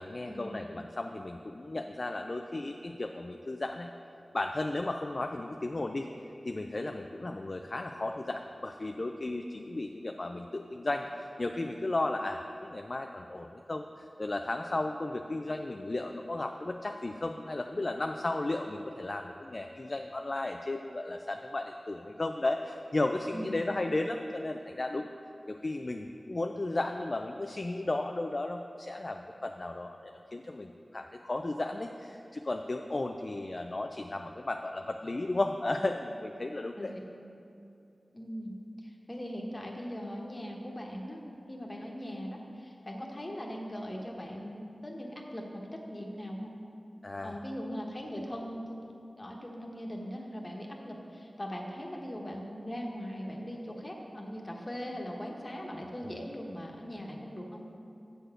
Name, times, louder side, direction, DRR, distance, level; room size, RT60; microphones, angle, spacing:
voice 1, 0.0-3.9 4.3-6.1 6.4-25.1 25.5-36.9 47.0-47.4, left 2 dB, 50° left, 5 dB, 0.3 m, -34 dB
voice 2, 38.1-38.6 38.8-41.2 41.5-46.5 47.2-48.9 49.2-57.7, equal, 35° left, 0 dB, 1.2 m, -40 dB
7.8 x 4.1 x 6.6 m, 2.7 s
cardioid pair, 45°, 0 cm